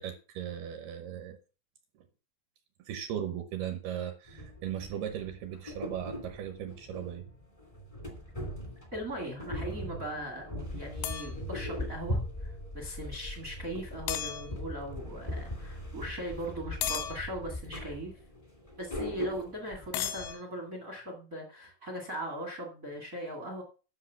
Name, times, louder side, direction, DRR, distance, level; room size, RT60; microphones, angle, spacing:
voice 1, 0.0-1.4 2.8-7.3, right 9 dB, 75° right, 2.5 m, -37 dB
sound 1, 4.3-20.3, left 1 dB, 25° left, 0.6 m, -40 dB
voice 2, 8.9-18.1 18.8-23.6, right 1 dB, 50° right, 0.9 m, -39 dB
sound 2, 11.0-11.3 14.1-14.5 16.8-17.2 19.9-20.4, left 10 dB, 80° left, 2.7 m, -34 dB
10.0 x 6.4 x 5.7 m
omnidirectional pair, 5.4 m